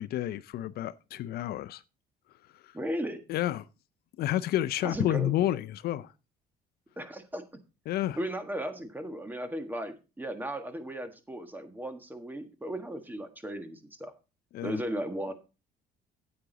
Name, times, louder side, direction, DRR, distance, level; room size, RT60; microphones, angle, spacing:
voice 1, 0.0-1.8 2.6-2.7 3.3-3.7 4.2-6.1 7.9-8.2 14.5-14.8, left 13 dB, 65° left, 0.5 m, -30 dB
voice 2, 2.7-3.2 4.8-5.3 7.0-7.6 8.2-14.1 14.6-15.3, right 1 dB, 10° right, 1.5 m, -36 dB
9.6 x 8.1 x 3.9 m
cardioid pair, 110°, 17 cm